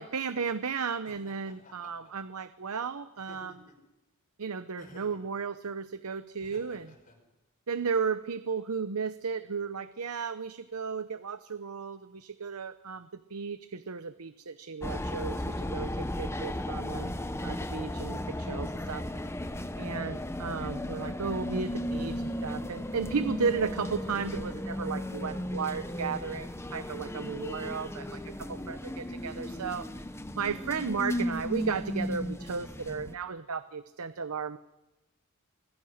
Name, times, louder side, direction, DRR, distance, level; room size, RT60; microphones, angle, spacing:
voice 1, 0.0-3.6 4.4-6.9 7.7-17.1 17.4-19.0 19.8-30.1 30.4-34.6, right 5 dB, 80° right, 12 dB, 0.8 m, -34 dB
Laughter, 1.0-2.1 3.1-3.9 4.8-5.3 6.4-7.2, left 2 dB, 35° left, 5.1 m, -54 dB
sound 1, 14.8-33.1, left 1 dB, 10° left, 0.9 m, -35 dB
26.0 x 20.5 x 6.5 m, 1.0 s
head